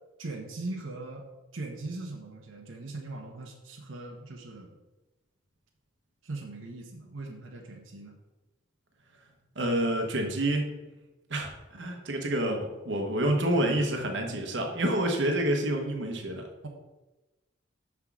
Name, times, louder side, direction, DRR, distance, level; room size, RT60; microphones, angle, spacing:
voice 1, 0.2-1.3 1.5-4.7 6.2-8.1, right 2 dB, 85° right, 1 dB, 0.9 m, -40 dB
voice 2, 9.6-10.7 11.3-16.5, right 1 dB, 60° right, 3 dB, 1.1 m, -28 dB
6.0 x 4.7 x 6.0 m, 1.1 s
head